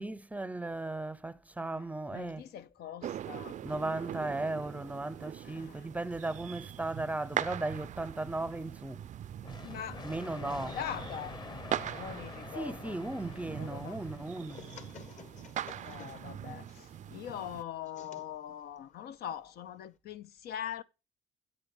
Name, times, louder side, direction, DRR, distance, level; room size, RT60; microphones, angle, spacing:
voice 1, 0.0-2.4 3.6-9.1 10.0-10.8 12.6-14.6, right 2 dB, 10° right, 0.7 m, -36 dB
voice 2, 1.6-3.6 5.4-5.9 9.6-10.1 10.4-11.3 11.9-13.0 13.6-14.0 15.7-20.8, left 9 dB, 70° left, 0.9 m, -42 dB
sound 1, 3.0-17.6, right 10 dB, 45° right, 0.5 m, -42 dB
sound 2, 9.4-15.0, left 4 dB, 25° left, 1.1 m, -46 dB
sound 3, 13.3-20.0, left 5 dB, 45° left, 1.6 m, -55 dB
10.5 x 7.8 x 5.4 m
cardioid pair, 110°, 17 cm